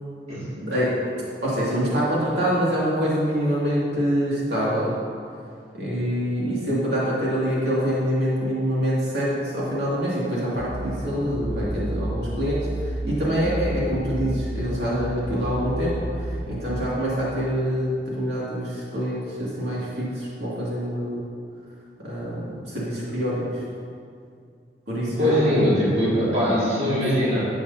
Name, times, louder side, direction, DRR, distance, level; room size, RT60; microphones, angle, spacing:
voice 1, 0.5-0.9 1.4-4.9 5.8-16.0 16.5-21.2 22.0-23.4 24.9-25.4, equal, 70° right, -7 dB, 2.3 m, -25 dB
sound 1, 10.6-16.5, right 1 dB, 50° left, 1.1 m, -31 dB
voice 2, 25.2-27.5, equal, 35° right, -9 dB, 2.2 m, -21 dB
11.0 x 8.1 x 2.8 m, 2.3 s
head